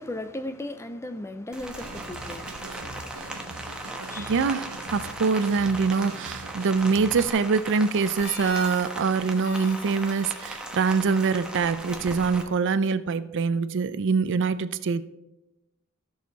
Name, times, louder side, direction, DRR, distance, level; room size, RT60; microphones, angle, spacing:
voice 1, 0.0-3.5 3.9-4.3, left 1 dB, 10° left, 0.4 m, -37 dB
Rain, 1.5-12.4, right 1 dB, 5° right, 1.0 m, -38 dB
sound 1, 1.8-7.3, right 3 dB, 80° right, 1.0 m, -42 dB
voice 2, 4.2-15.0, right 5 dB, 55° right, 0.5 m, -24 dB
Harmonica, 7.9-12.6, left 5 dB, 55° left, 1.2 m, -45 dB
14.0 x 6.4 x 4.0 m
head